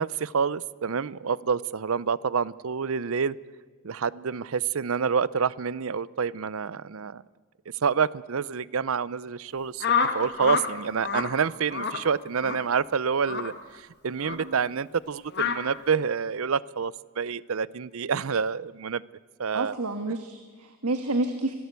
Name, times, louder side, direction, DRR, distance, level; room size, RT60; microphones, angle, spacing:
voice 1, 0.0-3.4 3.8-7.2 7.8-9.9 10.1-19.0 19.4-19.8, right 6 dB, 65° right, 20 dB, 0.6 m, -28 dB
sound 1, 9.8-10.7 11.0-11.3 11.7-12.0 12.4-12.6 13.2-13.5 14.2-14.4 15.3-15.6, left 6 dB, 50° left, 2.1 m, -27 dB
voice 2, 14.3-14.6 19.5-21.6, right 2 dB, 90° right, 7 dB, 1.5 m, -30 dB
25.5 x 17.5 x 8.2 m, 1.5 s
head